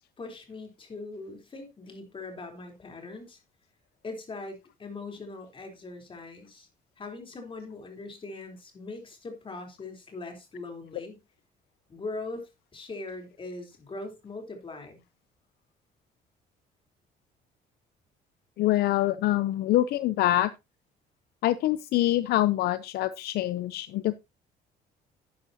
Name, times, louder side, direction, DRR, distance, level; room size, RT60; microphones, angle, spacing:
voice 1, 0.2-3.4 4.0-6.7 7.0-11.2 11.9-15.0, left 3 dB, 30° left, 3.5 m, -41 dB
voice 2, 18.6-20.5 21.4-24.1, left 15 dB, 70° left, 0.5 m, -25 dB
11.5 x 10.0 x 2.8 m
cardioid pair, 110°, 17 cm